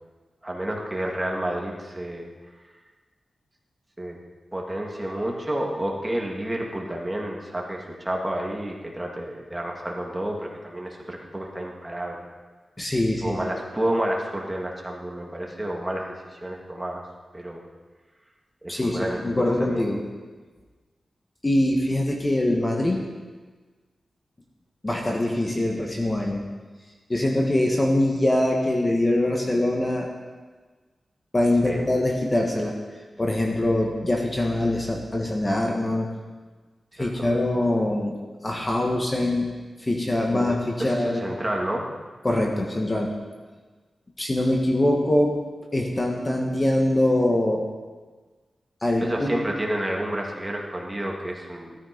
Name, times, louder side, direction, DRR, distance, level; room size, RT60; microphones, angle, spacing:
voice 1, 0.4-2.2 4.0-4.2 4.5-12.2 13.2-17.0 17.3-17.6 18.6-19.9 31.6-31.9 37.0-37.3 40.3-41.9 49.0-51.8, right 1 dB, 15° right, -1 dB, 2.1 m, -30 dB
voice 2, 12.8-13.4 18.7-20.0 21.4-23.1 24.8-26.4 27.1-30.1 31.3-32.8 33.2-36.1 37.0-38.1 38.4-39.5 39.9-41.3 42.2-43.1 44.2-45.4 45.7-47.6 48.8-49.4, left 1 dB, 20° left, 0 dB, 1.6 m, -23 dB
17.0 x 13.5 x 5.2 m, 1.4 s
wide cardioid pair, 170°, 0 cm